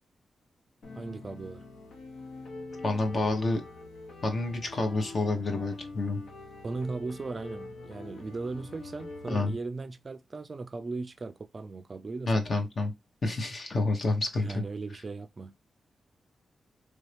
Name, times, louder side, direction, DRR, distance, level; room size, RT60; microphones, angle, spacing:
sound 1, 0.8-9.6, left 2 dB, 85° left, 0.9 m, -45 dB
voice 1, 1.0-1.6 6.6-12.4 14.4-15.5, right 3 dB, 35° right, 0.4 m, -37 dB
voice 2, 2.8-3.6 4.2-6.2 9.3-9.5 12.3-12.9 13.2-14.6, left 2 dB, 45° left, 1.0 m, -28 dB
3.2 x 2.7 x 3.3 m
cardioid pair, 100°, 0 cm